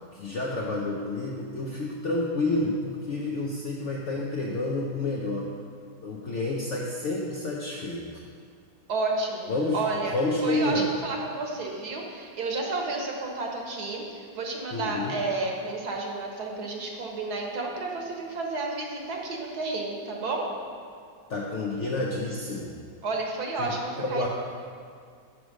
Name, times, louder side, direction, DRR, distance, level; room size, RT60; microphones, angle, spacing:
voice 1, 0.1-5.5 6.0-8.2 9.5-9.8 10.1-10.9 14.7-15.2 21.3-22.7 23.6-24.3, left 2 dB, 65° left, -2 dB, 0.7 m, -29 dB
voice 2, 8.9-20.5 23.0-24.3, right 3 dB, 65° right, 0 dB, 1.4 m, -31 dB
6.1 x 4.8 x 6.2 m, 2.2 s
omnidirectional pair, 1.9 m